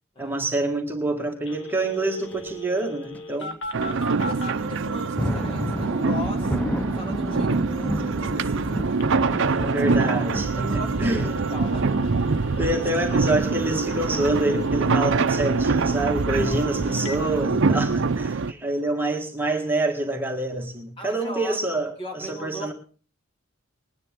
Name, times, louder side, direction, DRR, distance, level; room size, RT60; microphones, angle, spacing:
voice 1, 0.2-3.5 9.7-11.4 12.6-22.7, right 2 dB, 10° right, 1 dB, 1.8 m, -26 dB
Telephone, 1.5-4.6 9.0-17.2, equal, 65° left, 1.3 m, -40 dB
sound 1, 2.2-2.5 3.1-3.2 3.6-3.7 4.9-15.2, left 1 dB, 10° left, 0.7 m, -33 dB
voice 2, 3.4-6.6 6.9-9.0 9.3-9.8 10.6-12.4 16.4-17.0 18.1-18.7 21.0-21.6 22.0-22.7, equal, 25° left, 4 dB, 1.8 m, -39 dB
sound 2, 3.7-18.5, right 4 dB, 60° right, 0.6 m, -24 dB
21.5 x 9.7 x 3.7 m, 0.39 s
head